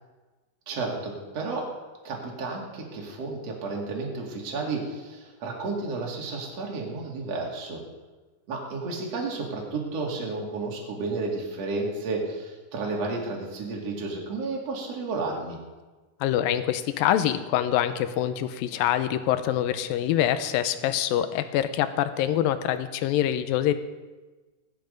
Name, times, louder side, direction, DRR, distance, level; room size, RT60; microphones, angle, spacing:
voice 1, 0.7-1.7 2.0-7.8 8.5-15.6, right 3 dB, 45° right, -1 dB, 3.4 m, -32 dB
voice 2, 16.2-23.7, left 11 dB, 85° left, 11 dB, 2.5 m, -25 dB
18.0 x 11.0 x 5.3 m, 1.2 s
omnidirectional pair, 4.1 m